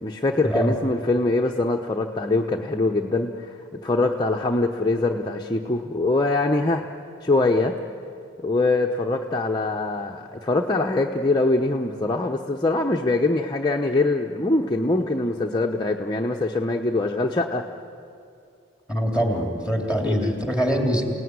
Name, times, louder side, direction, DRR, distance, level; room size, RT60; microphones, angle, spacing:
voice 1, 0.0-6.9 7.2-7.8 8.4-17.6 20.0-20.2, left 2 dB, 20° left, 1 dB, 0.9 m, -23 dB
voice 2, 18.9-21.0, equal, 5° right, 2 dB, 3.3 m, -23 dB
29.5 x 18.0 x 9.6 m, 2.4 s
head